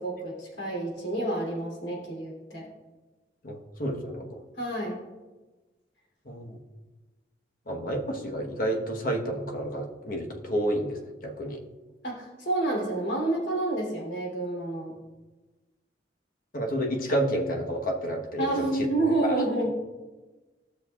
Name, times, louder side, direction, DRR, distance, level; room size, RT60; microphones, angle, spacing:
voice 1, 0.0-2.7 4.6-5.0 12.0-14.9 18.4-19.7, right 2 dB, 80° left, -2 dB, 3.1 m, -29 dB
voice 2, 3.4-4.4 6.2-6.6 7.7-11.6 16.5-18.9 19.2-19.4, right 1 dB, 55° left, 2 dB, 1.2 m, -30 dB
16.5 x 6.5 x 2.4 m, 1.2 s
head